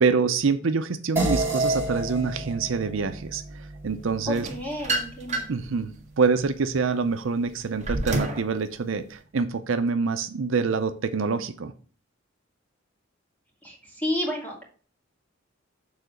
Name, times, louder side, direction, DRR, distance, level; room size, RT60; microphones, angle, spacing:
voice 1, 0.0-4.5 5.5-11.7, right 4 dB, 70° right, 9 dB, 0.6 m, -26 dB
sound 1, 1.2-5.9, right 2 dB, 10° right, 2.4 m, -31 dB
voice 2, 4.3-5.5 13.6-14.7, left 1 dB, 10° left, -2 dB, 2.5 m, -31 dB
sound 2, 4.3-5.7 6.2-8.5, right 2 dB, 35° right, 1.5 m, -29 dB
7.1 x 3.8 x 6.5 m, 0.40 s
head